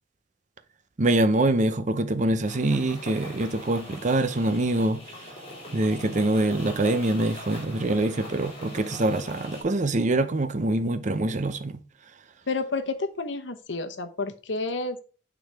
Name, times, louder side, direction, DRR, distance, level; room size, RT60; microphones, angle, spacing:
voice 1, 1.0-5.0 5.7-11.8, right 2 dB, 40° right, 0.7 m, -24 dB
sound 1, 2.5-9.6, left 1 dB, 35° left, 3.8 m, -41 dB
voice 2, 12.5-15.0, left 3 dB, 75° left, 0.9 m, -30 dB
9.3 x 4.0 x 3.4 m
head